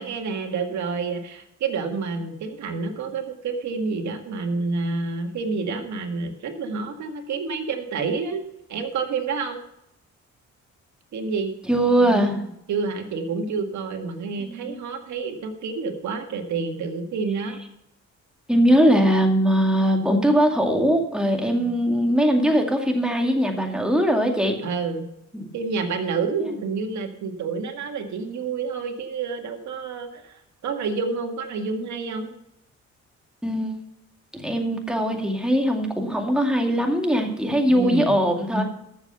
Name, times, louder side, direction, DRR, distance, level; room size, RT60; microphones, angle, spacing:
voice 1, 0.0-8.4 8.7-9.6 11.1-11.5 12.0-12.4 12.7-17.6 18.9-19.0 21.6-21.7 24.6-25.1 25.5-32.3 37.6-38.2, right 4 dB, 70° right, 5 dB, 2.0 m, -29 dB
voice 2, 11.7-12.4 14.4-14.8 18.5-24.6 25.3-25.5 33.4-33.7 34.3-38.6, equal, 5° right, 2 dB, 2.4 m, -21 dB
13.5 x 7.2 x 5.7 m, 0.80 s
cardioid pair, 90°, 30 cm